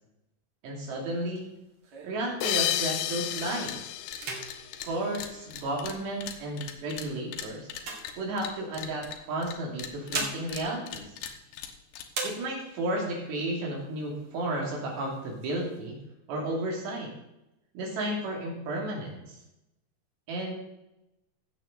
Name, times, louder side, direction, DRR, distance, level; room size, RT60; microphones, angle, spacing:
voice 1, 0.6-1.5 2.0-3.8 4.8-7.7 8.2-11.1 12.2-16.0 16.3-17.1 17.8-19.4 20.3-20.6, right 1 dB, 75° right, -2 dB, 5.1 m, -33 dB
sound 1, 0.9-3.0 3.5-3.7 4.1-6.0 6.7-8.8 9.7-11.7 12.1-12.9 13.4-13.5 13.8-14.4 14.9-15.8, right 3 dB, 50° right, 2.8 m, -40 dB
sound 2, 2.4-5.5, left 13 dB, 90° left, 3.0 m, -32 dB
sound 3, 3.0-3.1 3.3-3.8 4.1-9.5 9.8-12.4, left 9 dB, 75° left, 2.8 m, -40 dB
16.5 x 7.3 x 4.0 m, 0.89 s
omnidirectional pair, 5.0 m